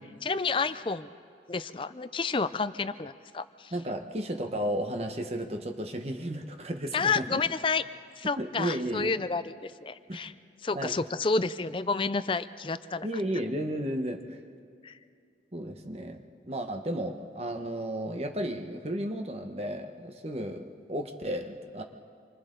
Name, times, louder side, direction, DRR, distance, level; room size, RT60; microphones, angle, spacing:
voice 1, 0.2-1.1 1.5-3.7 6.9-7.8 8.2-10.3 10.6-13.2 14.8-15.0, left 4 dB, 30° left, 13 dB, 0.5 m, -30 dB
voice 2, 3.7-7.4 8.4-9.1 10.1-10.3 10.7-10.9 13.0-14.4 15.5-21.8, right 1 dB, 35° right, 4 dB, 1.2 m, -33 dB
27.5 x 25.0 x 3.9 m, 2.4 s
head